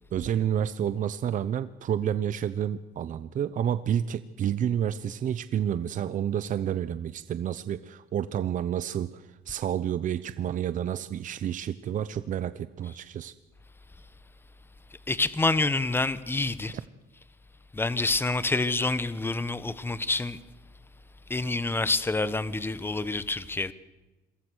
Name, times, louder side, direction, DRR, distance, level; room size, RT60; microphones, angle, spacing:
voice 1, 0.1-13.3, right 9 dB, 50° right, 0.9 m, -29 dB
voice 2, 15.1-16.7 17.7-20.4 21.3-23.7, left 3 dB, 15° left, 1.2 m, -27 dB
27.5 x 23.0 x 6.5 m
cardioid pair, 110°, 17 cm